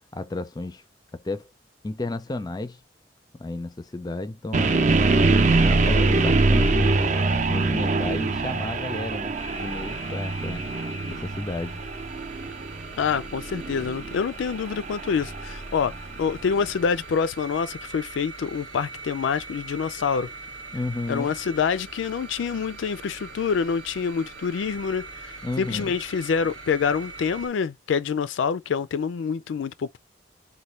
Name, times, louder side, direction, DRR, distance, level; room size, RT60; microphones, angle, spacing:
voice 1, 0.1-0.8 1.1-1.5 1.8-2.8 3.3-5.2 5.5-7.1 7.5-10.7 11.1-11.8 20.7-21.3 25.4-26.0, left 2 dB, 20° left, 0.4 m, -33 dB
sound 1, 4.5-16.5, right 3 dB, 40° right, 0.6 m, -24 dB
sound 2, 9.4-27.5, right 3 dB, 85° right, 1.3 m, -42 dB
voice 2, 13.0-15.9 16.2-20.3 21.1-30.0, left 6 dB, 90° left, 0.4 m, -26 dB
4.1 x 2.2 x 3.2 m
head